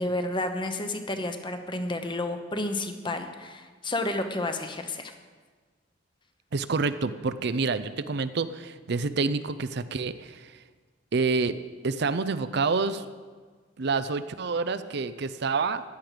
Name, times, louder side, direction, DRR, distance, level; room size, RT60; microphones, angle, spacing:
voice 1, 0.0-5.1, left 2 dB, 25° left, 6 dB, 1.0 m, -31 dB
voice 2, 6.5-10.6 11.1-11.6 11.8-13.0 13.8-15.8, right 4 dB, 60° right, 12 dB, 0.6 m, -28 dB
15.5 x 10.5 x 5.1 m, 1.5 s
head